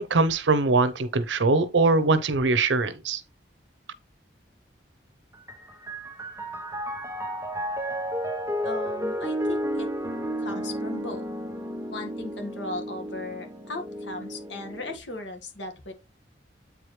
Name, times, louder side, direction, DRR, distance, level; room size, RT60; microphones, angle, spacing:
voice 1, 0.0-3.2, right 3 dB, 75° right, 0.7 m, -22 dB
Piano, 5.3-15.0, equal, 15° right, 1.0 m, -32 dB
voice 2, 8.6-9.9 10.4-11.3 11.9-15.9, left 2 dB, 80° left, 1.7 m, -37 dB
8.2 x 4.8 x 3.2 m
head